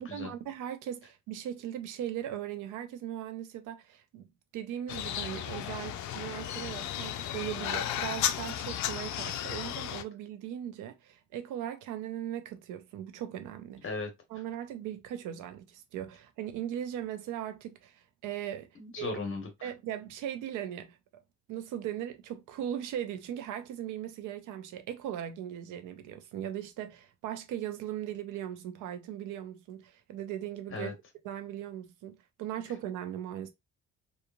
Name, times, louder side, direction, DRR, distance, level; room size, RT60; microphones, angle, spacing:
voice 1, 0.0-4.2 4.5-13.9 14.3-18.7 19.0-19.2 19.6-21.2 21.5-31.0 31.2-33.5, right 11 dB, 90° right, 0.6 m, -38 dB
sound 1, 4.9-10.0, left 11 dB, 70° left, 0.4 m, -34 dB
voice 2, 18.7-19.7 30.7-30.9, left 4 dB, 45° left, 1.1 m, -37 dB
3.0 x 2.3 x 2.3 m
cardioid pair, 90°, 30 cm